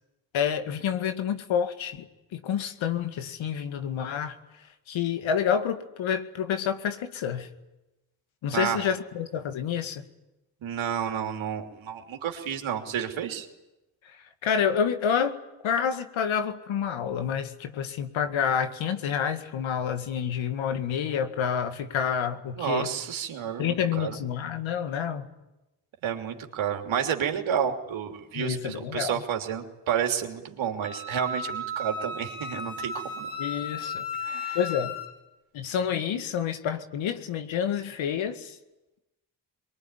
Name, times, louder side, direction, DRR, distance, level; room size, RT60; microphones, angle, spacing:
voice 1, 0.3-4.4 4.9-7.5 8.4-10.1 14.4-15.4 15.6-22.9 23.6-25.3 28.4-29.2 33.4-34.1 34.5-35.0 35.5-38.6, left 8 dB, 70° left, 8 dB, 2.1 m, -28 dB
voice 2, 8.5-8.8 10.6-13.5 22.5-24.2 26.0-33.3 34.2-34.6, right 8 dB, 70° right, 3 dB, 3.2 m, -30 dB
Wind instrument woodwind instrument, 30.8-35.1, left 2 dB, 45° left, 5.9 m, -34 dB
23.5 x 23.0 x 9.8 m, 0.99 s
hypercardioid pair, 45°, 48 cm